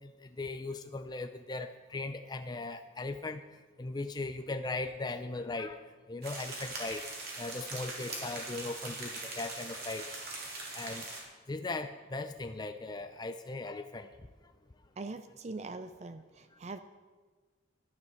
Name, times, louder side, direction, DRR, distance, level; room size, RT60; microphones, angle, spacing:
voice 1, 0.0-3.4 3.8-5.8 6.1-7.1 7.4-10.1 10.7-11.0 11.5-14.1, left 3 dB, 20° left, 7 dB, 0.4 m, -38 dB
sound 1, 6.2-11.2, right 2 dB, 50° right, 3.2 m, -41 dB
voice 2, 15.0-16.8, right 3 dB, 35° right, 10 dB, 0.5 m, -42 dB
12.0 x 11.0 x 6.5 m, 1.4 s
head